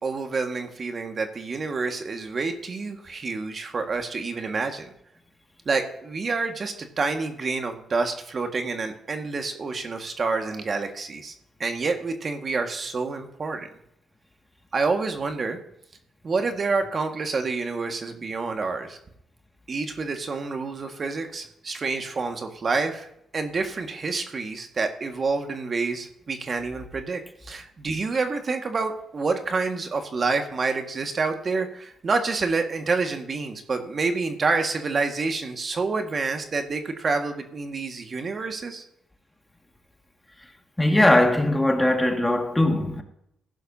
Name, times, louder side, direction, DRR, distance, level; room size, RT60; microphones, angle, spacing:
voice 1, 0.0-4.9 5.7-11.3 11.6-13.7 14.7-15.6 16.2-19.0 19.7-38.8, right 4 dB, 50° right, 1.7 m, -28 dB
voice 2, 40.8-43.0, left 1 dB, 15° left, 2.0 m, -20 dB
15.5 x 11.0 x 2.8 m
supercardioid pair, 65°, 0 cm